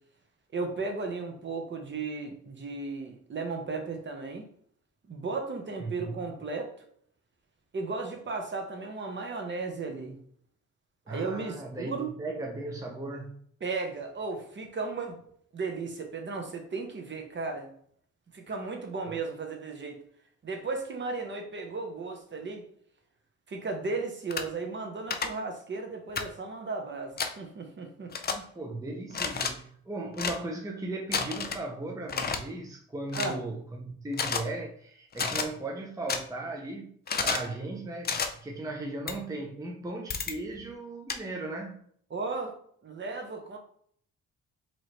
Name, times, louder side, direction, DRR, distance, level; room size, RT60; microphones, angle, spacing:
voice 1, 0.5-4.5 5.1-6.7 7.7-10.2 11.1-12.1 13.6-15.2 15.5-17.7 18.3-20.0 20.4-22.6 23.5-28.4 33.1-33.4 42.1-42.6 42.8-43.6, right 3 dB, 40° right, 4 dB, 1.0 m, -35 dB
voice 2, 5.8-6.3 11.1-13.4 19.1-19.2 28.5-37.0 37.2-38.1 38.4-41.8, right 2 dB, 10° right, 1 dB, 0.6 m, -37 dB
sound 1, 24.3-24.4 25.1-25.3 26.2-26.3 27.2-27.3 28.1-28.3 29.1-29.5 30.1-30.4 31.1-31.6 32.1-32.4 33.1-33.3 34.1-34.4 35.1-35.5 36.1-36.2 37.1-37.5 38.0-38.3 39.1-39.2 40.1-40.3 41.1-41.2, left 5 dB, 30° left, 0.6 m, -30 dB
4.6 x 3.0 x 3.2 m, 0.63 s
cardioid pair, 90°, 30 cm